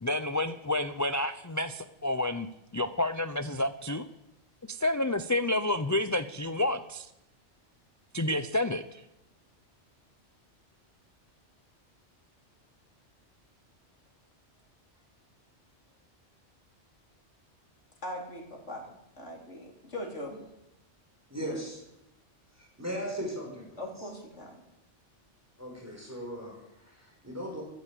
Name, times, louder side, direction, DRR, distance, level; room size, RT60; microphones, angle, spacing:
voice 1, 0.0-2.5 2.7-4.1 4.7-7.1 8.1-9.0, left 1 dB, 20° left, 11 dB, 0.5 m, -29 dB
voice 2, 18.0-20.4 23.8-24.6, left 1 dB, 85° left, 1 dB, 4.0 m, -40 dB
voice 3, 21.3-21.8 22.6-23.8 25.6-27.6, equal, 15° right, 0 dB, 5.3 m, -38 dB
14.5 x 11.5 x 8.4 m, 0.86 s
omnidirectional pair, 1.2 m